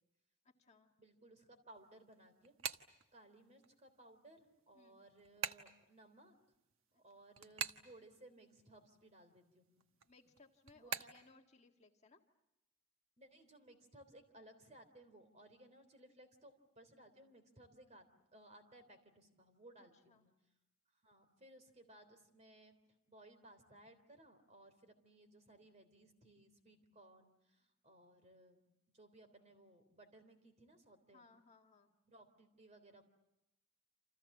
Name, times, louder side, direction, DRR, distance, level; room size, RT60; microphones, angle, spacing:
voice 1, 0.4-0.9 4.7-5.0 7.2-7.3 10.0-12.2 20.1-20.3 31.1-31.9, left 3 dB, 30° left, 2 dB, 1.8 m, -65 dB
voice 2, 1.0-2.5 3.1-6.4 6.9-9.8 10.7-11.1 13.2-18.1 18.3-20.3 20.9-22.8 23.1-28.6 28.9-31.2 32.1-33.0, right 1 dB, 30° right, 9 dB, 3.5 m, -62 dB
sound 1, 1.8-3.7 4.1-8.7 9.0-11.3, right 7 dB, 75° right, 1.2 m, -45 dB
29.0 x 28.0 x 7.3 m, 0.90 s
head